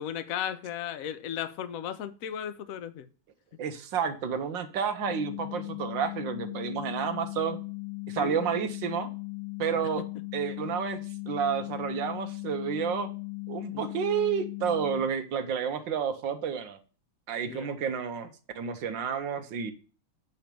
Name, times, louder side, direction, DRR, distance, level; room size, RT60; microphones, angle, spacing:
voice 1, 0.0-3.1 5.1-5.2 8.2-8.4 13.7-13.9 17.5-17.7, left 9 dB, 80° left, 12 dB, 0.7 m, -35 dB
voice 2, 3.6-7.6 8.1-9.1 9.6-10.0 10.3-11.0 11.3-13.1 13.5-16.8 17.3-19.7, right 7 dB, 65° right, 8 dB, 1.5 m, -30 dB
sound 1, 5.0-15.0, left 28 dB, 25° left, 1.3 m, -38 dB
8.4 x 4.5 x 5.1 m, 0.37 s
omnidirectional pair, 2.4 m